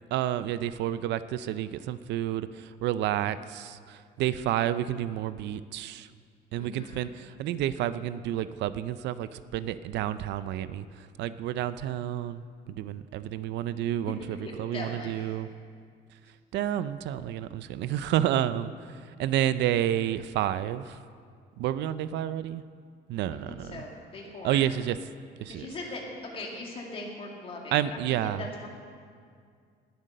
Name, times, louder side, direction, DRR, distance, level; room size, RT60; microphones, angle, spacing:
voice 1, 0.1-6.1 6.5-15.5 16.5-21.0 21.6-22.6 23.1-23.8 24.4-25.0 25.4-25.7 27.7-28.4, right 11 dB, 70° right, 14 dB, 0.5 m, -30 dB
voice 2, 6.6-7.1 14.4-15.4 23.3-24.6 25.5-26.0 26.3-28.7, left 2 dB, 30° left, -1 dB, 2.2 m, -40 dB
19.0 x 8.0 x 6.5 m, 2.2 s
cardioid pair, 180°, 19 cm